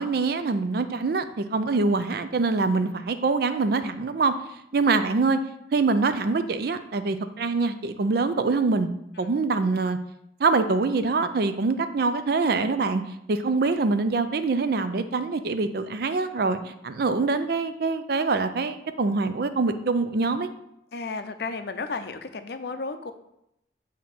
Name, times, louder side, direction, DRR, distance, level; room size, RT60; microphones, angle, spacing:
voice 1, 0.0-4.3 4.7-5.4 5.7-8.9 9.2-10.0 10.4-13.0 13.3-20.5, right 3 dB, 50° right, 10 dB, 0.4 m, -24 dB
voice 2, 20.9-23.1, left 4 dB, 55° left, 9 dB, 0.5 m, -33 dB
7.2 x 2.9 x 5.8 m, 0.81 s
head